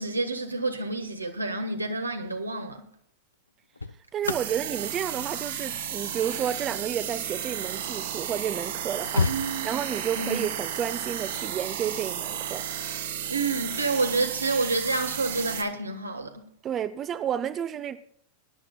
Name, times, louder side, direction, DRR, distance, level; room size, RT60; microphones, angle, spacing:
voice 1, 0.0-2.8 9.3-9.7 10.2-10.4 13.3-16.4, right 3 dB, 80° right, 1.5 m, -29 dB
sound 1, 2.2-2.5 3.3-7.9 8.5-8.6 8.8-10.1 11.7-12.0, left 4 dB, 80° left, 0.5 m, -34 dB
voice 2, 4.1-12.6 16.6-18.0, right 9 dB, 30° right, 0.7 m, -31 dB
sound 2, 4.2-15.6, right 9 dB, 60° right, 1.5 m, -33 dB
23.0 x 11.0 x 2.3 m
figure-of-eight pair, 90°, 0 cm